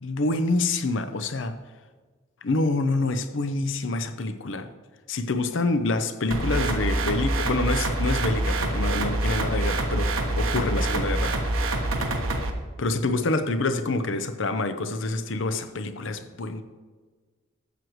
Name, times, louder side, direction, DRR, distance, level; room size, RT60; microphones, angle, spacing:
voice 1, 0.0-1.6 2.4-4.7 5.1-11.6 12.8-16.6, left 2 dB, 65° left, 10 dB, 0.6 m, -27 dB
sound 1, 6.3-12.5, right 1 dB, 80° right, 1.2 m, -25 dB
14.0 x 7.8 x 3.1 m, 1.4 s
head